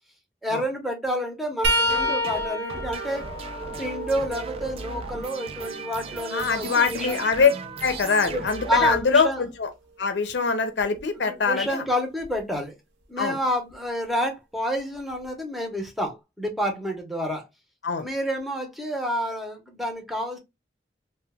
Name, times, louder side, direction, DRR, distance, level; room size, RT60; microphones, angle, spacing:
voice 1, 0.4-3.2 3.8-7.2 8.3-9.4 11.2-12.7 13.1-17.4 18.0-20.4, equal, ahead, 0.7 m, -29 dB
sound 1, 1.6-5.4 5.9-7.9 10.8-11.0 12.2-12.4 13.7-13.8, equal, 85° right, 0.7 m, -30 dB
sound 2, 1.9-9.6, right 4 dB, 35° right, 0.4 m, -36 dB
voice 2, 6.3-7.5 7.8-9.7 10.0-11.8 13.2-13.4 17.8-18.1, left 5 dB, 75° left, 0.5 m, -23 dB
2.8 x 2.2 x 3.3 m
head